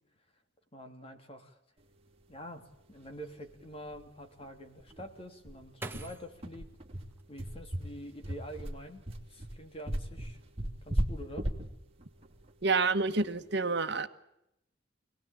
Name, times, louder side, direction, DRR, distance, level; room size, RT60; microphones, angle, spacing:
voice 1, 0.7-1.5 2.3-6.7 7.3-10.4 10.8-11.5, equal, 30° left, 5 dB, 2.9 m, -46 dB
sound 1, 3.1-3.2 3.5-3.6 3.9-4.0 4.4-4.5 5.0-13.4, right 1 dB, 35° right, 2.8 m, -36 dB
sound 2, 4.8-7.9 8.4-9.2 9.5-9.9, right 2 dB, 10° right, 1.6 m, -48 dB
voice 2, 12.6-14.1, right 3 dB, 65° right, 8 dB, 1.4 m, -28 dB
26.0 x 18.5 x 8.8 m, 0.84 s
head